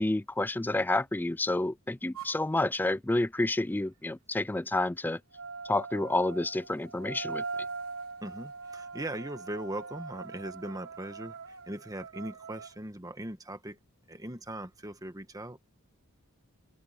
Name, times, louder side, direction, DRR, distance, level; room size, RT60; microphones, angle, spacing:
voice 1, 0.0-5.2 5.7-7.4, left 2 dB, 10° left, 0.3 m, -29 dB
sound 1, 2.1-2.4 5.3-12.7, right 4 dB, 80° right, 3.9 m, -41 dB
voice 2, 8.2-11.4 11.7-13.8 14.1-15.6, right 1 dB, 15° right, 1.4 m, -39 dB
head